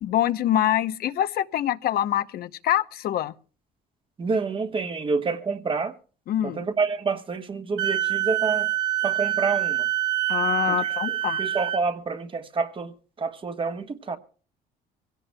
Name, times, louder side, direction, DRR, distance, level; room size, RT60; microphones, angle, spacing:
voice 1, 0.0-3.3 6.3-6.6 10.3-11.4, left 11 dB, 65° left, 0.7 m, -25 dB
voice 2, 4.2-5.9 6.4-8.7 9.0-9.9 10.7-14.2, right 4 dB, 30° right, 1.2 m, -28 dB
Wind instrument woodwind instrument, 7.8-11.8, right 13 dB, 90° right, 1.1 m, -26 dB
24.0 x 17.0 x 2.2 m
cardioid pair, 110°, 17 cm